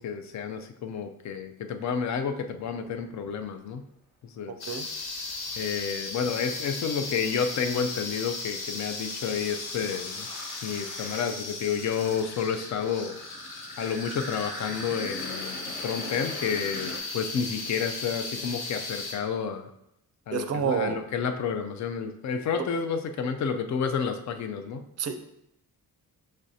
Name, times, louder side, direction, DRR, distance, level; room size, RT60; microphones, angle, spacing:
voice 1, 0.0-3.8 4.2-4.6 5.6-10.3 10.6-13.2 13.8-19.7 20.3-24.8, left 6 dB, 50° left, 7 dB, 0.5 m, -30 dB
sound 1, 2.5-3.5 5.0-5.7 7.5-17.0, equal, 25° left, 1.2 m, -43 dB
sound 2, 4.6-19.1, left 3 dB, 75° left, 0.9 m, -36 dB
voice 2, 20.3-21.0 25.0-25.2, right 7 dB, 45° right, 8 dB, 0.4 m, -28 dB
6.1 x 3.2 x 2.7 m, 0.81 s
wide cardioid pair, 140°, 38 cm